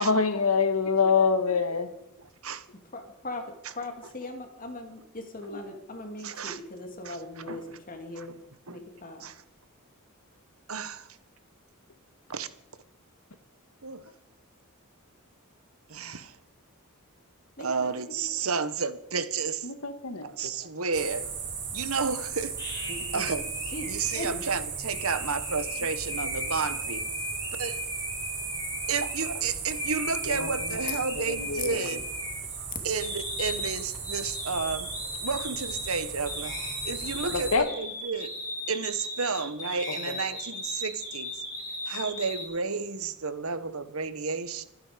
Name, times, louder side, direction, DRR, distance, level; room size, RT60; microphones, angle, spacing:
voice 1, 0.0-1.9 5.5-5.6 19.6-20.2 30.3-30.8 31.2-31.9 37.3-37.6 40.1-40.2, left 5 dB, 85° left, 1.9 m, -26 dB
voice 2, 2.9-3.4 3.8-8.3 8.7-9.2 17.6-18.2 22.9-24.3, left 2 dB, 40° left, 2.5 m, -40 dB
voice 3, 6.2-6.6 7.0-7.6 8.1-8.4 8.7-8.8 9.2-9.4 10.7-11.2 12.3-12.5 13.8-14.0 15.9-16.4 17.6-19.7 20.2-21.3 21.7-22.5 23.1-23.5 23.8-27.0 27.6-27.9 28.9-32.0 32.8-34.9 35.2-36.6 36.8-38.3 38.7-41.3 41.9-44.6, right 5 dB, 75° right, 1.3 m, -31 dB
sound 1, 20.9-37.6, right 5 dB, 55° right, 7.0 m, -37 dB
sound 2, 22.6-29.4 29.7-32.6 33.0-42.5, left 1 dB, 20° left, 7.8 m, -37 dB
26.0 x 10.5 x 5.2 m
head